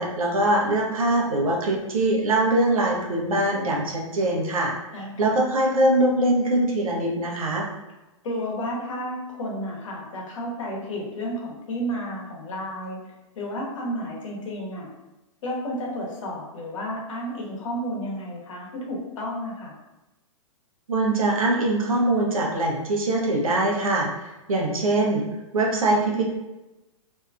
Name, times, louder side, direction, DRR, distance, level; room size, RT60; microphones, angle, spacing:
voice 1, 0.0-4.7 5.2-7.7 20.9-25.2 25.5-26.3, right 1 dB, 85° right, 0 dB, 0.7 m, -22 dB
voice 2, 4.9-5.4 8.2-14.9 15.4-19.7, equal, 65° left, -2 dB, 0.9 m, -32 dB
2.7 x 2.4 x 2.3 m, 1.0 s
hypercardioid pair, 120°, 17 cm